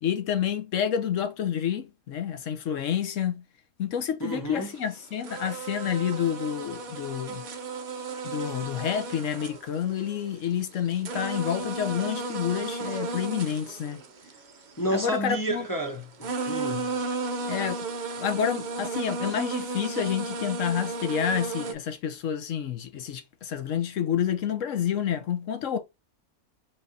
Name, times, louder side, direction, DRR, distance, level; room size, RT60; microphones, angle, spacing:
voice 1, 0.0-3.4 3.8-7.4 8.2-14.0 14.9-15.7 17.5-17.9 18.2-25.8, left 9 dB, 65° left, 1.0 m, -29 dB
voice 2, 4.2-4.7 14.8-16.9, right 1 dB, 25° left, 0.4 m, -30 dB
sound 1, 4.7-4.9 5.2-10.3 10.7-15.1 15.9-16.0 16.2-21.7, right 3 dB, 55° right, 0.5 m, -34 dB
4.1 x 3.7 x 2.6 m
omnidirectional pair, 1.5 m